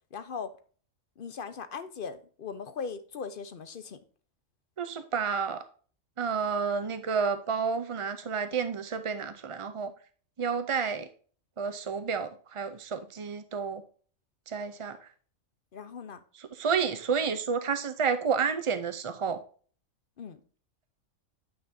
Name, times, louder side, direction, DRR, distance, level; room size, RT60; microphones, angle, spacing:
voice 1, 0.1-0.5 1.2-4.0 15.7-16.2 20.2-20.4, left 5 dB, 50° left, 10 dB, 0.8 m, -39 dB
voice 2, 4.8-5.6 6.2-9.9 10.4-11.1 11.6-13.8 14.5-14.9 16.6-19.4, right 6 dB, 55° right, 10 dB, 0.3 m, -30 dB
9.4 x 5.9 x 2.6 m, 0.43 s
omnidirectional pair, 1.4 m